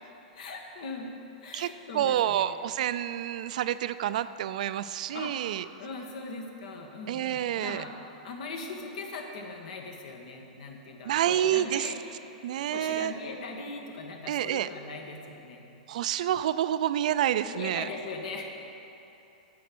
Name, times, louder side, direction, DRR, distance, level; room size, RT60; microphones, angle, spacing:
voice 1, 0.3-2.5 4.1-4.2 5.1-7.9 8.2-12.0 12.3-12.4 12.7-15.7 17.5-18.4, left 3 dB, 65° left, 2 dB, 1.5 m, -40 dB
voice 2, 1.5-5.6 7.1-7.8 11.0-11.9 12.4-13.1 14.3-14.7 15.9-17.9, right 11 dB, 65° right, 13 dB, 0.4 m, -28 dB
9.4 x 7.2 x 6.1 m, 3.0 s
hypercardioid pair, 140°, 4 cm